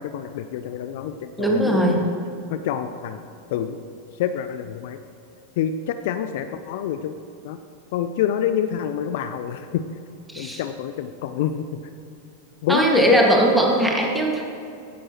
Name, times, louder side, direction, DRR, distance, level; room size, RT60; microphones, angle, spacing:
voice 1, 0.0-2.0 2.5-3.2 3.5-3.8 4.2-5.0 5.6-7.2 7.4-7.6 7.9-9.8 10.4-11.8 12.6-13.2, left 9 dB, 50° left, 9 dB, 0.5 m, -27 dB
voice 2, 1.4-2.0 10.3-10.6 12.7-14.4, right 1 dB, 5° right, -1 dB, 1.9 m, -19 dB
15.5 x 11.0 x 3.0 m, 2.6 s
figure-of-eight pair, 90°, 0 cm